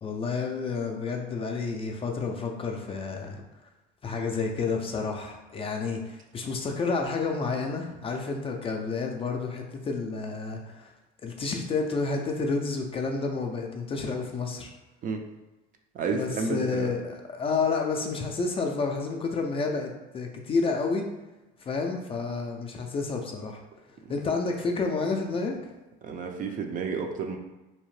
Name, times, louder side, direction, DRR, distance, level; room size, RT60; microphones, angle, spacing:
voice 1, 0.0-3.4 4.0-10.9 11.2-14.7 16.1-21.1 21.6-23.6 24.1-25.6, left 4 dB, 25° left, 2 dB, 0.4 m, -30 dB
voice 2, 15.9-16.9 26.0-27.4, right 5 dB, 40° right, 3 dB, 0.4 m, -31 dB
2.8 x 2.1 x 3.1 m, 1.1 s
supercardioid pair, 105°, 21 cm